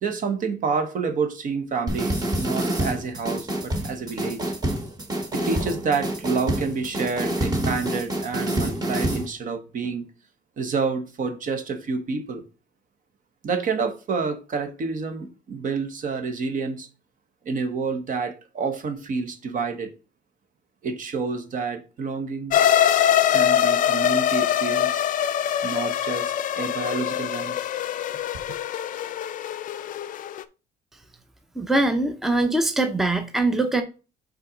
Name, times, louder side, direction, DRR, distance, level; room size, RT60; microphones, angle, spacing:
voice 1, 0.0-4.4 5.3-10.1 10.6-12.4 13.4-16.9 17.4-19.9 20.8-22.6 23.3-25.1 25.6-27.6 28.3-28.4, right 5 dB, 50° right, 1.0 m, -28 dB
sound 1, 1.9-9.3, right 1 dB, 20° right, 1.1 m, -27 dB
sound 2, 22.5-30.4, left 10 dB, 45° left, 0.4 m, -23 dB
voice 2, 31.6-33.8, right 2 dB, ahead, 0.6 m, -22 dB
5.6 x 3.9 x 4.9 m
cardioid pair, 140°, 18 cm